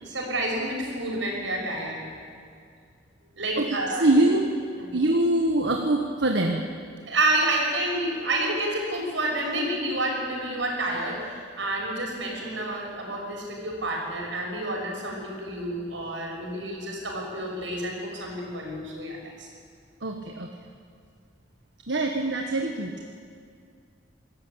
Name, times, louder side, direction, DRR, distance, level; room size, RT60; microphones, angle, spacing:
voice 1, 0.0-2.0 3.4-4.1 4.8-4.9 7.1-19.5, right 1 dB, 85° right, 0 dB, 6.4 m, -29 dB
voice 2, 4.0-4.5 4.9-6.6 20.0-20.5 21.9-22.9, right 1 dB, 70° right, 2 dB, 1.6 m, -23 dB
25.0 x 14.0 x 8.8 m, 2.3 s
head